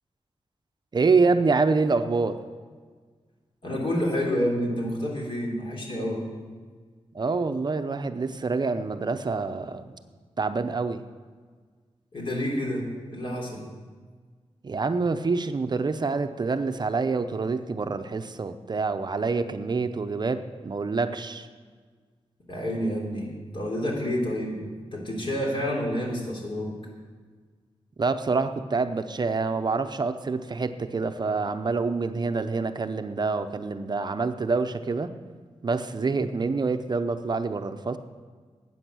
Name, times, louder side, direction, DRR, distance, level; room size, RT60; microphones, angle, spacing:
voice 1, 0.9-2.4 7.1-9.9 10.4-11.0 14.6-21.5 28.0-35.1 35.6-38.0, right 4 dB, 40° right, 8 dB, 0.6 m, -26 dB
voice 2, 3.6-6.2 12.1-13.6 22.5-24.6 24.9-26.7, equal, 50° left, -2 dB, 3.3 m, -29 dB
13.5 x 9.3 x 6.2 m, 1.5 s
wide cardioid pair, 155°, 11 cm